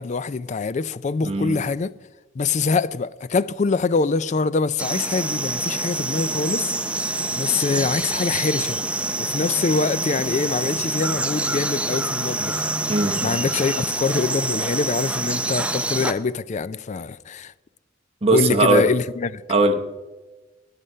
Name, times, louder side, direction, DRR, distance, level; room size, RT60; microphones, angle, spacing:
voice 1, 0.0-1.9 2.4-8.8 9.2-12.7 13.2-17.5 18.3-19.4, left 4 dB, 40° left, 0.4 m, -24 dB
voice 2, 1.2-1.6 12.9-13.4 18.2-18.9 19.5-19.8, right 2 dB, 30° right, 1.0 m, -19 dB
sound 1, 4.8-16.1, right 2 dB, 5° right, 0.6 m, -26 dB
17.5 x 9.1 x 5.5 m
head